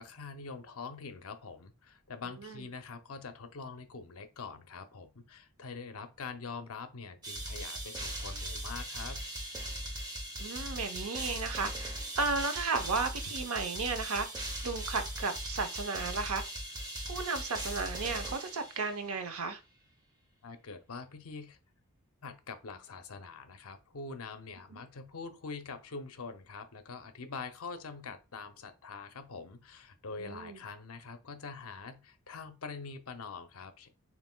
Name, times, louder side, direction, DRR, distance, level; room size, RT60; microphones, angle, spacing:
voice 1, 0.0-9.2 20.4-21.6 22.2-33.9, left 4 dB, 70° left, 0.6 m, -44 dB
sound 1, 7.2-19.1, right 1 dB, 20° right, 0.8 m, -39 dB
voice 2, 10.4-16.4 17.1-19.6 24.7-24.8 30.2-30.6, right 4 dB, 70° right, 0.7 m, -34 dB
6.9 x 2.5 x 2.2 m
head